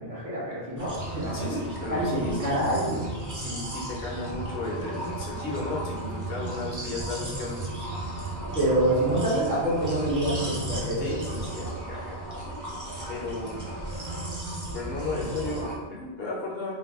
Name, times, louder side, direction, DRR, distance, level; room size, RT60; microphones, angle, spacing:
voice 1, 0.0-1.6 1.9-3.1 8.5-11.0, right 1 dB, 50° right, -7 dB, 0.8 m, -26 dB
sound 1, 0.8-15.8, right 2 dB, 30° right, 0.4 m, -34 dB
voice 2, 1.3-2.6 3.4-7.6 11.0-12.3 13.1-13.6 14.7-16.7, left 3 dB, 60° left, -3 dB, 0.8 m, -35 dB
2.6 x 2.2 x 3.4 m, 1.3 s
omnidirectional pair, 1.2 m